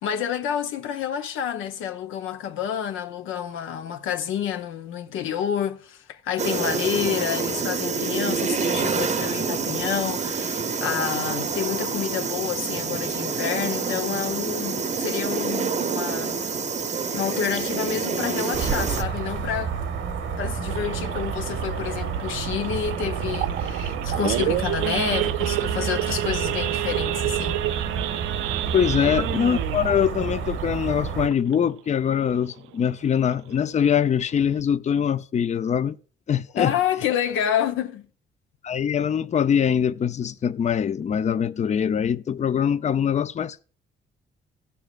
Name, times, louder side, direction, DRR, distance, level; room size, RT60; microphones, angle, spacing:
voice 1, 0.0-16.4 17.1-19.8 20.4-27.6 36.5-38.1, left 9 dB, 85° left, 0.9 m, -29 dB
sound 1, 6.4-19.0, right 5 dB, 35° right, 0.8 m, -27 dB
sound 2, 18.5-31.3, right 6 dB, 75° right, 1.1 m, -29 dB
Idling / Accelerating revving vroom / Sawing, 20.7-31.8 32.2-32.4 32.6-32.7 33.2-33.5 34.0-34.1 34.3-34.6, right 15 dB, 90° right, 0.4 m, -30 dB
voice 2, 28.7-36.0 36.3-36.7 38.6-43.6, left 8 dB, 35° left, 0.5 m, -23 dB
16.0 x 7.0 x 2.4 m
cardioid pair, 90°, 20 cm